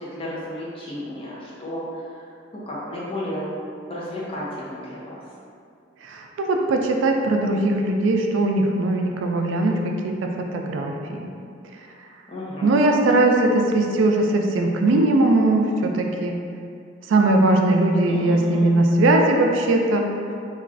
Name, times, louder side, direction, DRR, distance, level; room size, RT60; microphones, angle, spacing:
voice 1, 0.0-3.5 3.9-5.2 12.3-12.7 18.1-18.7, left 1 dB, 30° left, -7 dB, 0.6 m, -33 dB
voice 2, 6.0-11.3 12.6-16.4 17.1-20.0, right 2 dB, 90° right, 2 dB, 0.3 m, -20 dB
3.0 x 2.4 x 2.4 m, 2.4 s
head